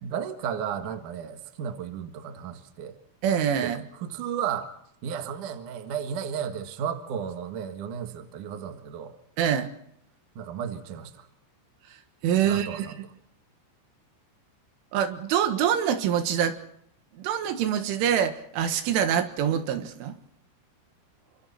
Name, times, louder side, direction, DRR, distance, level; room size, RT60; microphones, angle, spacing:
voice 1, 0.0-2.9 3.6-4.7 5.0-9.1 10.4-11.3 12.4-13.0, right 8 dB, 60° right, 7 dB, 2.3 m, -34 dB
voice 2, 3.2-3.8 9.4-9.7 12.2-12.9 14.9-16.6 17.2-20.2, right 9 dB, 75° right, 8 dB, 3.9 m, -25 dB
28.5 x 25.5 x 4.3 m, 0.70 s
omnidirectional pair, 5.9 m